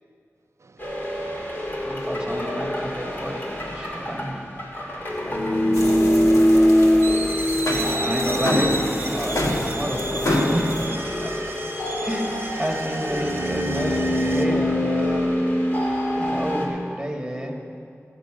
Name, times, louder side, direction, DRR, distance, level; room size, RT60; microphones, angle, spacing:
voice 1, 0.6-2.1 5.0-5.6 8.0-8.1 15.9-16.2, right 4 dB, 65° right, 0.4 m, -51 dB
sound 1, 0.8-16.7, equal, 40° left, 2.3 m, -24 dB
voice 2, 1.8-4.4 8.0-11.0 12.0-15.3 16.1-17.5, equal, 10° right, 1.9 m, -29 dB
voice 3, 5.2-7.3 11.0-11.5, left 1 dB, 70° left, 1.2 m, -41 dB
sound 2, 5.7-10.9, left 1 dB, 85° left, 1.6 m, -27 dB
sound 3, 7.0-14.5, right 2 dB, 45° right, 0.9 m, -33 dB
16.0 x 8.3 x 5.0 m
wide cardioid pair, 55°, 5 cm